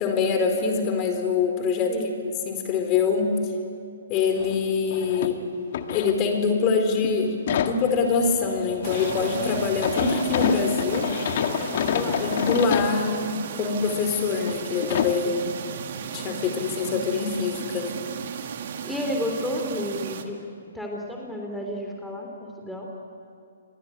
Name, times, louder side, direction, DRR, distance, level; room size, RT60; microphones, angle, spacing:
voice 1, 0.0-1.9 2.2-3.3 4.1-5.4 5.9-11.0 12.2-15.4 16.1-18.0, left 5 dB, 30° left, 5 dB, 4.4 m, -24 dB
voice 2, 1.9-2.2 11.7-12.3 15.2-15.5 18.8-22.9, left 1 dB, 5° left, -1 dB, 3.2 m, -32 dB
sound 1, 4.4-4.6 4.9-6.6 7.0-13.0 13.6-13.7 14.4-14.6 14.8-15.2 16.9-17.0 17.3-17.4, left 8 dB, 50° left, 1.7 m, -28 dB
sound 2, 8.8-20.2, right 8 dB, 50° right, 2.2 m, -35 dB
29.0 x 22.5 x 8.9 m, 2.4 s
figure-of-eight pair, 130°, 0 cm